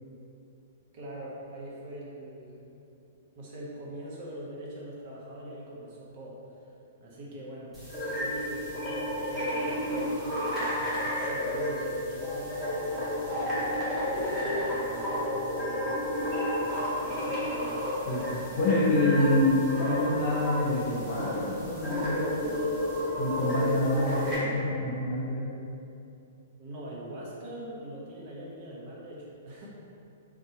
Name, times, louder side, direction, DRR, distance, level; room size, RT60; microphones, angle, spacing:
voice 1, 0.9-2.6 3.4-6.4 7.0-7.7 8.1-16.1 16.6-17.8 26.6-29.7, right 1 dB, 50° right, -5 dB, 0.6 m, -43 dB
sound 1, 7.7-24.4, left 1 dB, 10° right, 0.9 m, -31 dB
voice 2, 18.1-22.3 23.1-25.5, left 1 dB, 45° left, -5 dB, 0.7 m, -27 dB
2.7 x 2.1 x 2.7 m, 2.7 s
hypercardioid pair, 120°, 0 cm